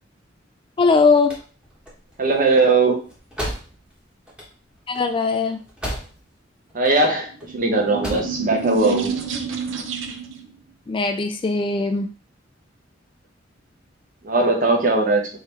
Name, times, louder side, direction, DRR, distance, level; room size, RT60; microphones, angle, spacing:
voice 1, 0.8-1.3 4.9-5.6 10.9-12.1, left 4 dB, 25° left, 7 dB, 0.3 m, -19 dB
sound 1, 1.1-6.4 6.7-7.5 7.8-8.4, equal, 5° right, 1.2 m, -34 dB
voice 2, 2.2-3.0 6.7-9.1 14.2-15.3, right 3 dB, 45° right, 2 dB, 1.0 m, -19 dB
sound 2, 7.3-10.5, right 5 dB, 85° right, 0.6 m, -29 dB
4.7 x 3.2 x 3.3 m, 0.37 s
head